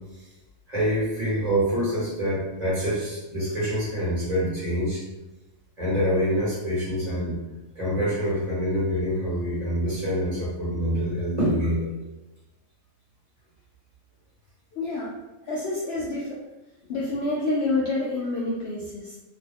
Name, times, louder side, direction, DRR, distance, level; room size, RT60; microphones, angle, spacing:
voice 1, 0.7-5.0 5.8-7.4 7.7-11.9, equal, 30° right, -8 dB, 1.2 m, -26 dB
voice 2, 14.7-15.1 15.5-16.4 16.9-19.2, left 2 dB, 65° left, -5 dB, 0.7 m, -28 dB
2.9 x 2.2 x 3.3 m, 1.1 s
omnidirectional pair, 1.5 m